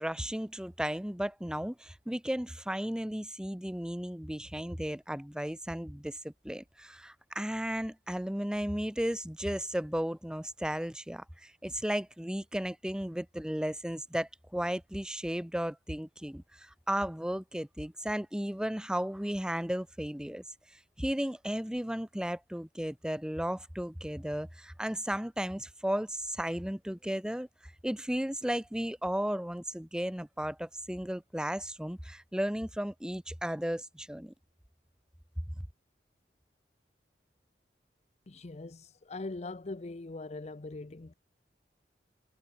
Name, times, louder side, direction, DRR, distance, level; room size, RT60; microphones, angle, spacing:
voice 1, 0.0-20.4 21.0-27.5 27.8-34.3, equal, 5° right, 0.9 m, -34 dB
voice 2, 38.3-41.1, left 2 dB, 40° left, 0.6 m, -41 dB
head